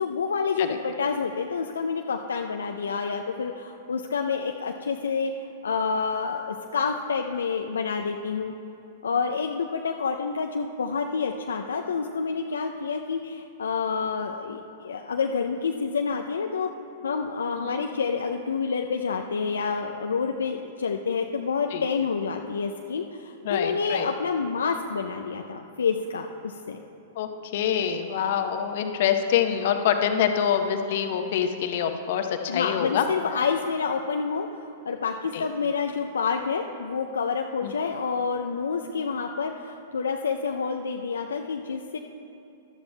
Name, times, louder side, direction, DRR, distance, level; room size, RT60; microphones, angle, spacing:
voice 1, 0.0-8.5 9.0-16.7 17.0-26.8 32.5-42.0, left 5 dB, 75° left, 3 dB, 0.4 m, -28 dB
voice 2, 23.4-24.1 27.2-33.0 35.3-35.4 37.6-37.7, left 8 dB, 55° left, 6 dB, 0.8 m, -25 dB
18.0 x 12.0 x 2.2 m, 2.8 s
figure-of-eight pair, 105°, 0 cm